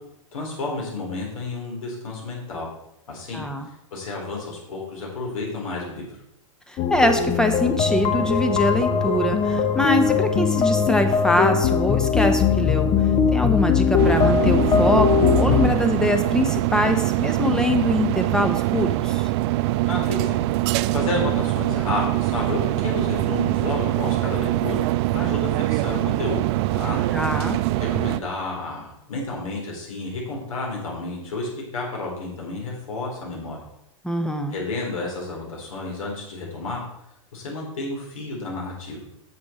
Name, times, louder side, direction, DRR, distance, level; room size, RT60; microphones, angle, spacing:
voice 1, 0.3-2.7 3.1-3.4 3.9-6.1 19.9-20.5 20.9-24.8 25.1-26.4 26.7-27.0 27.8-33.6 34.5-36.8 37.3-39.0, left 3 dB, 85° left, -1 dB, 3.9 m, -31 dB
voice 2, 3.3-3.7 6.7-12.9 13.3-19.3 27.1-27.6 34.0-34.6, left 1 dB, 5° left, 6 dB, 1.0 m, -23 dB
sound 1, 6.8-15.7, left 6 dB, 30° left, 0.8 m, -20 dB
sound 2, 14.0-28.2, right 17 dB, 55° right, 0.4 m, -23 dB
8.5 x 7.3 x 4.3 m, 0.81 s
hypercardioid pair, 115°, 17 cm